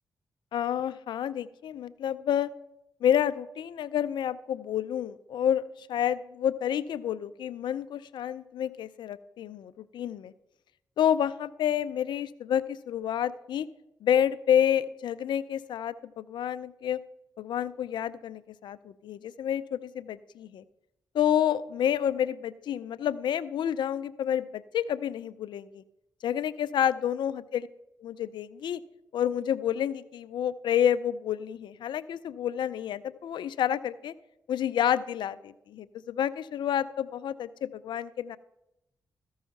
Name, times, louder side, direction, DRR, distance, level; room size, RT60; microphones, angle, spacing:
voice 1, 0.5-2.5 3.0-10.3 11.0-13.7 14.0-17.0 17.4-20.6 21.1-25.8 26.2-27.7 28.0-28.8 29.1-34.1 34.5-38.4, left 9 dB, 75° left, 16 dB, 0.4 m, -29 dB
13.5 x 5.5 x 5.7 m, 0.87 s
supercardioid pair, 40°, 8 cm